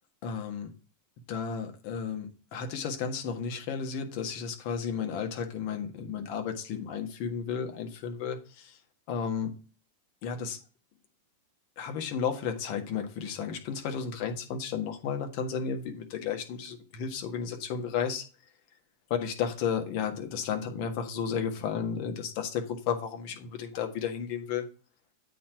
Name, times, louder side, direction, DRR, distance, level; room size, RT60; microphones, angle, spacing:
voice 1, 0.2-0.7 1.3-8.8 9.1-9.5 10.2-10.6 11.8-18.2 19.1-24.7, left 7 dB, 45° left, 5 dB, 1.5 m, -33 dB
8.3 x 4.4 x 4.7 m, 0.36 s
figure-of-eight pair, 90°, 0 cm